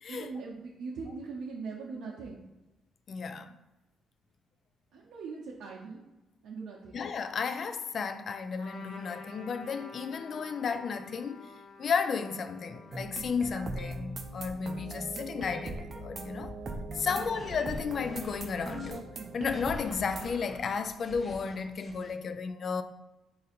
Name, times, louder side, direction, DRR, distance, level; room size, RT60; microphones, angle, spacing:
voice 1, 0.1-2.5 4.9-6.0 6.4-7.0 10.2-10.3 17.1-17.4, right 4 dB, 80° right, 0.6 m, -41 dB
voice 2, 3.1-3.6 6.9-11.5 11.8-16.5 16.9-22.8, left 5 dB, 55° left, 0.3 m, -33 dB
Trumpet, 8.6-14.4, left 3 dB, 90° left, 0.8 m, -51 dB
sound 1, 12.9-20.3, right 2 dB, 40° right, 0.5 m, -40 dB
sound 2, 17.1-19.0 19.4-22.1, left 1 dB, 35° left, 0.7 m, -51 dB
3.9 x 2.5 x 4.2 m
cardioid pair, 90°, 0 cm